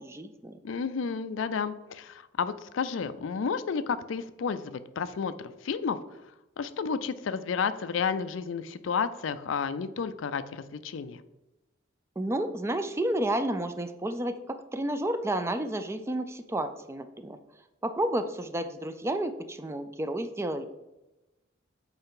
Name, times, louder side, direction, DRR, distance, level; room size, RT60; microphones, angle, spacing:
voice 1, 0.0-0.6 12.2-17.4 17.8-20.6, right 1 dB, 15° right, 9 dB, 0.4 m, -31 dB
voice 2, 0.6-6.0 6.6-11.2, left 6 dB, 70° left, 13 dB, 0.4 m, -31 dB
8.0 x 4.5 x 3.7 m, 0.99 s
head